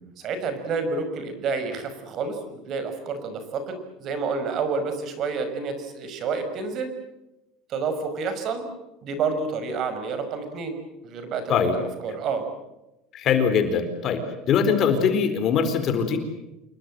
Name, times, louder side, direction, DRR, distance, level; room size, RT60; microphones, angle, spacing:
voice 1, 0.2-6.9 7.7-8.6 9.0-10.8 11.0-12.5, right 4 dB, 40° right, 9 dB, 5.6 m, -29 dB
voice 2, 13.1-16.2, left 6 dB, 40° left, 8 dB, 4.2 m, -22 dB
28.0 x 22.0 x 7.7 m, 0.95 s
cardioid pair, 150°, 0 cm